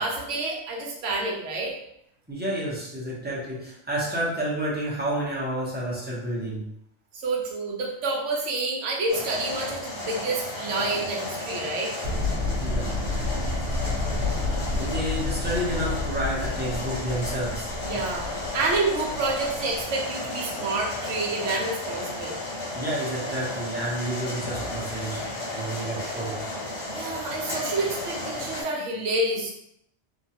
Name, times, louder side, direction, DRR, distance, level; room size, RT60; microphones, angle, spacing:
voice 1, 0.0-1.7 7.1-11.9 17.8-22.4 26.9-29.5, right 2 dB, 65° right, -1 dB, 1.0 m, -28 dB
voice 2, 2.3-6.7 12.6-12.9 14.5-17.7 22.7-26.4, right 1 dB, 10° right, -7 dB, 0.5 m, -30 dB
sound 1, 9.1-28.6, left 2 dB, 60° left, 1.2 m, -34 dB
sound 2, 12.0-19.8, left 2 dB, 40° right, 1.2 m, -30 dB
3.0 x 2.2 x 2.8 m, 0.76 s
omnidirectional pair, 1.4 m